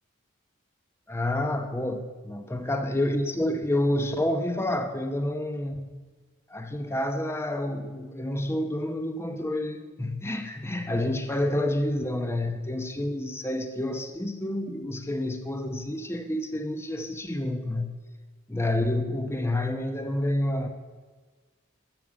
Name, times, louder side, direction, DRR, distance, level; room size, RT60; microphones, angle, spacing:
voice 1, 1.1-6.0 6.5-18.0 18.5-20.7, left 1 dB, 10° left, 6 dB, 0.8 m, -29 dB
12.0 x 6.7 x 8.5 m, 1.4 s
head